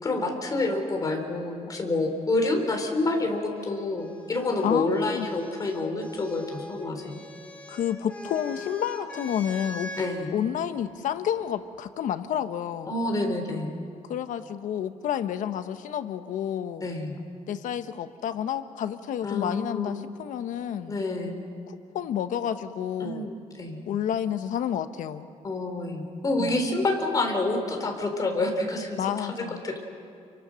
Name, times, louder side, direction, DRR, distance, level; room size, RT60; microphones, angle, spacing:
voice 1, 0.0-7.2 10.0-10.3 12.9-13.7 16.8-17.2 19.2-19.9 20.9-21.4 23.0-23.8 25.4-29.0 29.4-29.9, left 2 dB, 30° left, 3 dB, 3.9 m, -28 dB
sound 1, 3.5-10.1 11.3-11.9, left 2 dB, 10° left, 2.7 m, -42 dB
voice 2, 4.6-5.3 7.7-9.9 10.3-13.0 14.1-16.8 17.5-21.0 21.7-23.3 23.9-25.3 26.4-26.6 29.0-29.6, left 9 dB, 85° left, 10 dB, 1.2 m, -30 dB
30.0 x 23.5 x 6.5 m, 2.6 s
cardioid pair, 155°, 13 cm